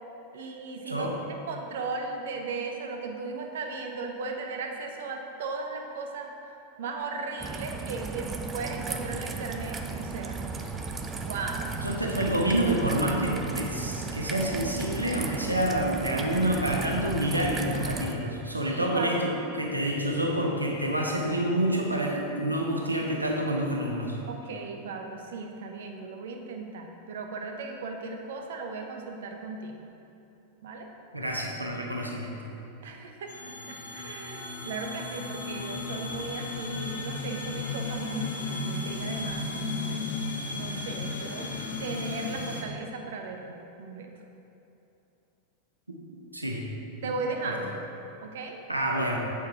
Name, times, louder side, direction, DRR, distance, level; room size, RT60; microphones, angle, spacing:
voice 1, 0.3-1.1 1.5-6.3 6.8-10.4 11.2-11.7 18.6-19.2 24.3-29.8 30.6-30.9 32.8-40.1 40.5-41.5 41.8-44.1 47.0-47.8 48.2-48.6, right 4 dB, 60° right, 3 dB, 1.0 m, -36 dB
voice 2, 0.9-1.2 11.7-24.2 31.1-32.3 46.3-46.6 47.0-47.1 47.4-47.6 48.7-49.2, right 1 dB, 85° right, 0 dB, 1.2 m, -28 dB
Raindrop / Trickle dribble, 7.4-18.1, right 4 dB, 20° right, 0.6 m, -35 dB
sound 1, 33.3-42.6, left 3 dB, 65° left, 1.2 m, -34 dB
8.4 x 7.2 x 4.5 m, 2.8 s
figure-of-eight pair, 90°, 0 cm